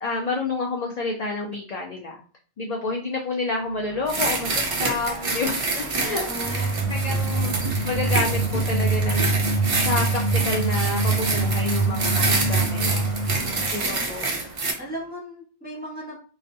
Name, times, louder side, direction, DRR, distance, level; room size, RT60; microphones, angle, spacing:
voice 1, 0.0-2.2 2.6-9.3 9.7-13.1 13.7-14.3, left 3 dB, 60° left, -1 dB, 0.4 m, -29 dB
sound 1, 3.5-15.1, equal, 40° left, 1.0 m, -41 dB
sound 2, 4.1-14.7, right 3 dB, 60° right, 0.3 m, -27 dB
voice 2, 6.0-6.7 13.8-14.1 14.8-16.2, right 1 dB, 10° right, -5 dB, 0.8 m, -36 dB
sound 3, 6.4-13.8, right 3 dB, 90° left, 0.9 m, -24 dB
2.3 x 2.1 x 2.6 m, 0.40 s
omnidirectional pair, 1.2 m